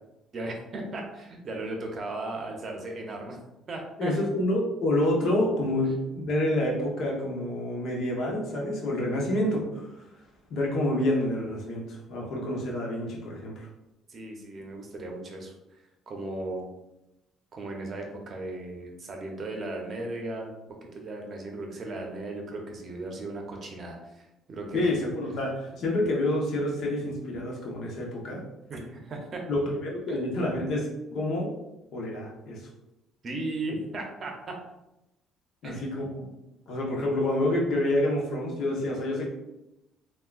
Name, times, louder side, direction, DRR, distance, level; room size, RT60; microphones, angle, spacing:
voice 1, 0.3-3.4 3.7-4.1 14.1-15.8 16.1-16.7 17.5-20.5 20.8-24.9 28.7-29.4 33.2-34.5 35.6-35.8, right 2 dB, 40° right, 1 dB, 0.6 m, -36 dB
voice 2, 4.0-10.2 10.5-13.7 24.7-28.4 29.5-31.5 31.9-32.7 35.6-36.3 36.7-39.3, left 1 dB, 65° left, -2 dB, 0.9 m, -28 dB
3.5 x 2.3 x 2.4 m, 0.93 s
cardioid pair, 115°, 0 cm